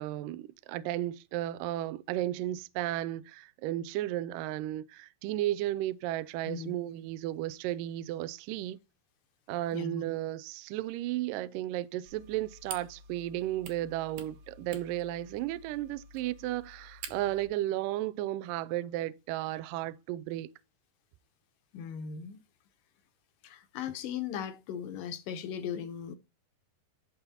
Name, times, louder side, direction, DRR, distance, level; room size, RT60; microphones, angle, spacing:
voice 1, 0.0-8.8 9.5-20.5, right 14 dB, 85° right, 1.9 m, -34 dB
voice 2, 9.7-10.0 21.7-22.4 23.4-26.2, left 8 dB, 75° left, 2.1 m, -38 dB
sound 1, 12.1-17.5, right 5 dB, 70° right, 3.1 m, -48 dB
11.5 x 3.9 x 4.2 m
omnidirectional pair, 4.7 m